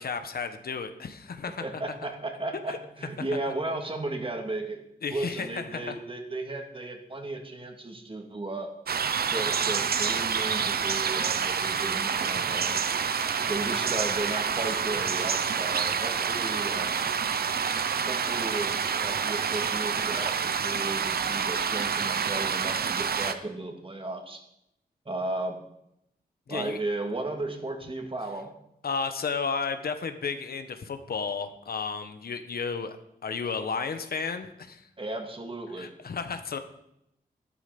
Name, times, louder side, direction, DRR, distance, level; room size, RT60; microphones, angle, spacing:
voice 1, 0.0-1.6 2.5-2.8 5.0-5.9 26.5-26.8 28.8-33.0 33.2-34.8 35.8-36.6, left 5 dB, 70° left, 8 dB, 1.3 m, -33 dB
voice 2, 1.6-4.8 5.1-8.7 9.3-12.7 13.5-16.9 18.0-24.4 25.1-25.6 26.5-28.5 35.0-35.9, right 2 dB, 35° right, 3 dB, 2.6 m, -35 dB
sound 1, 8.9-23.3, right 6 dB, 75° right, 0.9 m, -28 dB
12.0 x 11.5 x 5.3 m, 0.79 s
cardioid pair, 65°, 16 cm